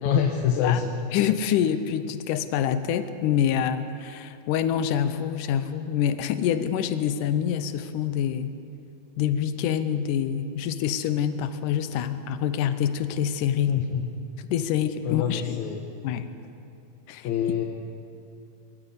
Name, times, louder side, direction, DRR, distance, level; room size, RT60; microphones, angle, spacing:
voice 1, 0.0-0.9 13.7-14.1 15.0-15.9 17.2-17.7, left 8 dB, 75° left, 2 dB, 2.3 m, -25 dB
voice 2, 1.1-8.5 9.2-13.8 14.5-15.6 16.0-16.3 17.1-17.3, left 9 dB, 90° left, 11 dB, 2.3 m, -26 dB
23.5 x 13.5 x 8.2 m, 2.7 s
omnidirectional pair, 3.6 m